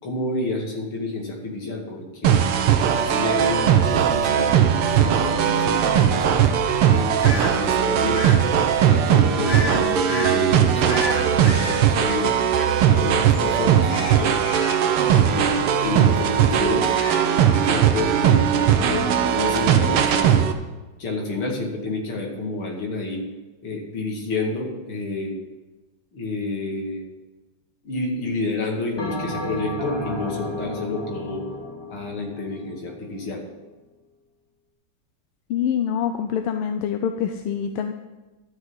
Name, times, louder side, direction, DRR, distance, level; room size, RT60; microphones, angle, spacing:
voice 1, 0.0-2.4 3.0-6.2 6.9-8.4 8.8-12.3 12.9-14.4 15.2-16.9 17.5-20.4 21.0-23.2 23.6-25.4 26.1-27.0 27.8-31.4 31.9-33.4, left 2 dB, 70° left, 0 dB, 3.1 m, -29 dB
sound 1, 2.2-20.5, right 9 dB, 90° right, 1.9 m, -19 dB
sound 2, 7.2-7.5 8.1-8.4 9.5-9.8 10.1-10.4 10.9-13.1 13.3-13.5 13.9-15.7 16.1-16.2 16.6-17.5, left 3 dB, 40° left, 1.0 m, -33 dB
Bell, 29.0-33.6, left 1 dB, 10° left, 1.6 m, -33 dB
voice 2, 35.5-37.9, left 8 dB, 85° left, 7 dB, 1.6 m, -25 dB
12.0 x 6.5 x 8.0 m, 1.1 s
omnidirectional pair, 2.4 m